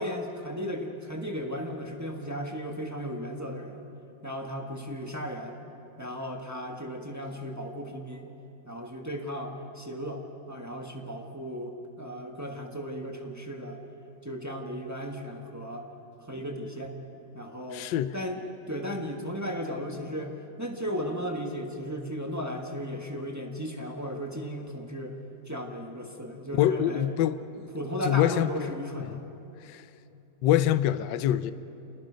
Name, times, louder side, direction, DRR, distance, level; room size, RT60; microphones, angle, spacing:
voice 1, 0.0-3.8 4.2-5.6 6.0-8.3 8.6-13.8 14.2-15.9 16.3-17.0 17.3-17.9 18.1-20.3 20.6-25.2 25.5-27.1 27.7-29.2, equal, 10° right, 1.2 m, -35 dB
voice 2, 17.7-18.1 26.6-27.4 28.0-29.1 29.6-29.8 30.4-31.5, left 12 dB, 75° left, 1.3 m, -25 dB
27.5 x 20.0 x 5.1 m
omnidirectional pair, 2.0 m